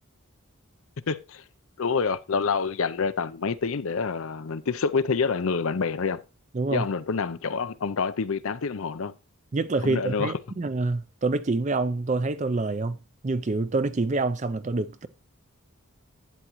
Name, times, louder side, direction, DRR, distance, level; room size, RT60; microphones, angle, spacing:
voice 1, 1.1-1.4 1.8-6.2 6.7-9.1 9.8-10.3, left 5 dB, 65° left, 0.6 m, -27 dB
voice 2, 6.5-6.9 9.5-15.1, right 3 dB, 30° right, 0.4 m, -27 dB
11.5 x 8.9 x 3.0 m
head